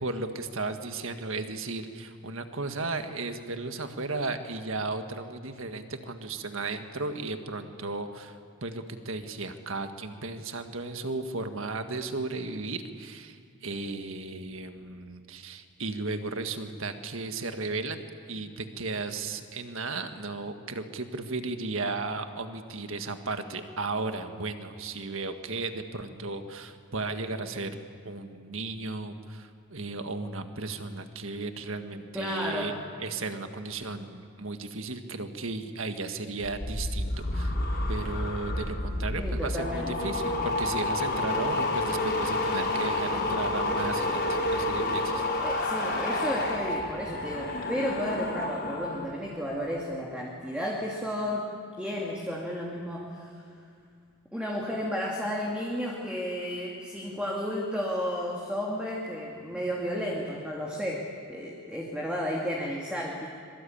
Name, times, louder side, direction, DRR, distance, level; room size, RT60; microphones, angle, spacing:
voice 1, 0.0-18.0 18.3-27.8 28.0-32.7 33.0-37.6 37.9-45.3, right 3 dB, 65° right, 7 dB, 1.7 m, -35 dB
voice 2, 32.1-32.7 38.9-40.0 45.4-51.5 51.8-53.4 54.3-63.3, equal, 5° right, -3 dB, 2.5 m, -33 dB
sound 1, 36.4-49.1 49.4-49.8, left 2 dB, 50° left, 5.0 m, -30 dB
25.0 x 23.5 x 8.7 m, 2.3 s
head